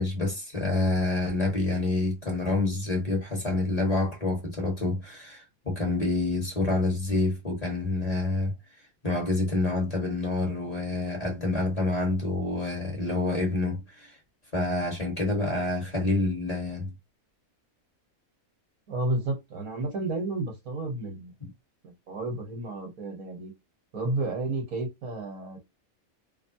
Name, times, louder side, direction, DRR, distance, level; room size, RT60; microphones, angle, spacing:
voice 1, 0.0-8.5 9.0-14.1 14.5-16.9 21.4-21.5, left 2 dB, 30° left, 1.3 m, -27 dB
voice 2, 18.9-21.3 21.8-23.5 23.9-25.6, right 2 dB, 80° right, 1.9 m, -31 dB
3.5 x 2.2 x 2.7 m
omnidirectional pair, 1.4 m